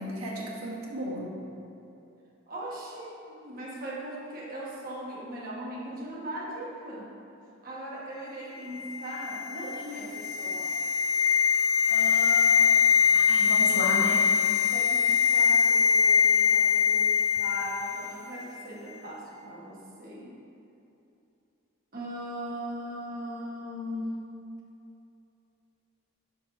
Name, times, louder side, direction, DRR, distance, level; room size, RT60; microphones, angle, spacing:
voice 1, 0.0-1.3 13.1-14.2, right 1 dB, 85° right, -3 dB, 1.3 m, -33 dB
voice 2, 2.5-7.1 7.6-10.8 11.9-12.9 14.7-20.3 21.9-24.2, right 1 dB, 45° right, -5 dB, 1.2 m, -39 dB
sound 1, 8.7-18.0 18.3-18.4, left 7 dB, 70° left, 0.4 m, -23 dB
5.2 x 4.3 x 5.9 m, 2.8 s
head